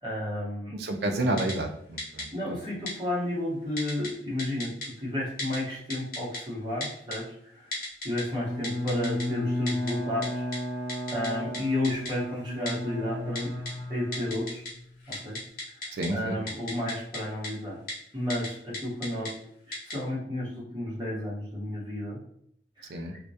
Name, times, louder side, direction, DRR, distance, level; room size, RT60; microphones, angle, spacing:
voice 1, 0.0-0.7 2.3-4.7 5.0-7.7 8.0-10.4 11.1-13.5 13.9-14.6 15.1-15.4 16.1-17.8 18.1-19.3 19.7-22.2 22.8-23.1, left 1 dB, 25° right, -7 dB, 0.9 m, -32 dB
voice 2, 0.8-2.2 15.9-16.4 22.9-23.1, right 1 dB, 60° right, 5 dB, 0.4 m, -29 dB
Typing, 1.4-1.5 2.0-2.2 2.9-3.0 3.8-4.1 4.4-4.9 5.4-5.6 5.9-6.4 6.8-7.2 7.7-8.2 8.6-9.2 9.7-9.9 10.2-10.3 10.5-10.6 10.9-11.3 11.5-11.6 11.8-12.1 12.7-12.8 13.4-13.7 14.1-14.7 15.0-16.1 16.5-17.2 17.4-17.5 17.9-18.0 18.3-18.5 18.7-19.3 19.7-19.9, left 2 dB, 50° left, 0.7 m, -34 dB
Bowed string instrument, 8.2-14.9, left 1 dB, 80° right, 0.8 m, -33 dB
2.2 x 2.1 x 2.6 m, 0.69 s
head